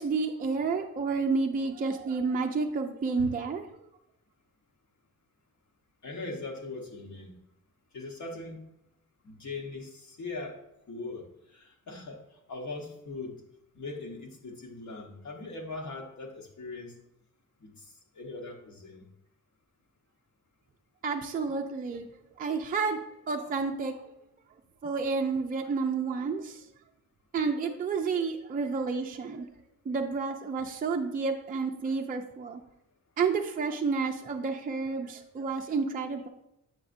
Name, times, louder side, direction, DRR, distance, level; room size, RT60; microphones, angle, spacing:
voice 1, 0.0-3.6 21.0-22.1 22.4-23.0 23.3-23.9 24.8-26.7 27.3-29.5 29.9-32.6 33.2-36.3, right 4 dB, 30° right, 2 dB, 0.4 m, -30 dB
voice 2, 6.0-7.3 7.9-8.6 9.2-10.6 10.9-11.2 11.5-13.4 13.7-16.9 17.6-19.0, left 3 dB, 60° left, 0 dB, 1.1 m, -40 dB
7.9 x 6.1 x 2.5 m, 0.82 s
wide cardioid pair, 160°, 32 cm